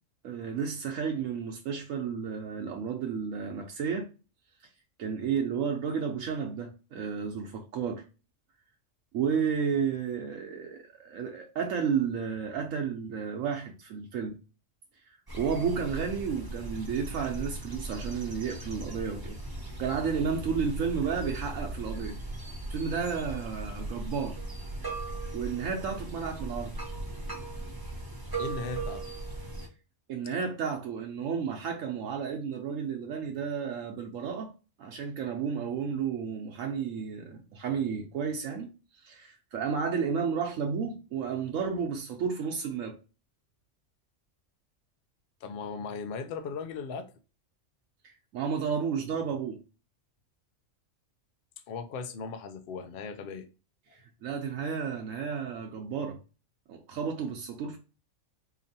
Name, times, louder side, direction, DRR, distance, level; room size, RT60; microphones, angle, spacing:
voice 1, 0.2-4.1 5.0-8.0 9.1-14.4 15.3-19.4 19.8-22.2 22.7-24.4 25.3-26.7 30.1-34.5 34.8-42.9 48.0-49.6 53.9-56.2 56.7-57.8, right 6 dB, 85° right, 1.0 m, -32 dB
sound 1, 15.3-29.7, right 2 dB, 20° right, 0.7 m, -38 dB
voice 2, 28.4-29.1 45.4-47.1 51.7-53.5, left 5 dB, 55° left, 0.7 m, -37 dB
4.1 x 3.0 x 2.7 m
omnidirectional pair, 1.3 m